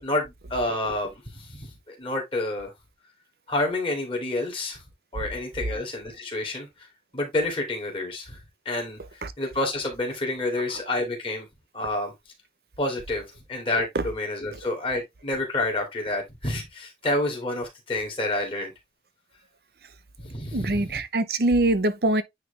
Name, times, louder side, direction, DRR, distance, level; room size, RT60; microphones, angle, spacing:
voice 1, 0.0-2.7 3.5-4.8 5.1-6.9 7.1-8.4 8.6-9.0 9.4-11.5 11.7-12.1 12.8-18.7 20.2-21.0, left 2 dB, 30° left, 2.5 m, -29 dB
voice 2, 20.5-22.2, right 2 dB, 60° right, 0.7 m, -23 dB
9.7 x 3.3 x 3.3 m
head